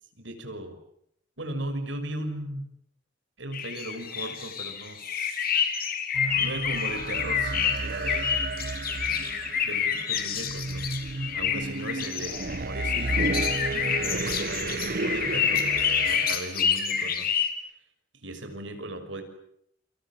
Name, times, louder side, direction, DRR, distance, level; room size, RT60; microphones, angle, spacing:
voice 1, 0.2-0.8 1.4-2.7 3.4-5.7 6.3-8.4 9.6-10.9 11.3-13.3 13.7-17.3 18.2-19.2, right 1 dB, 80° right, 8 dB, 6.1 m, -37 dB
sound 1, 3.5-17.5, left 8 dB, 55° left, 3.8 m, -28 dB
sound 2, 6.1-16.4, right 3 dB, 50° right, 1.1 m, -32 dB
29.0 x 26.5 x 7.5 m, 0.70 s
head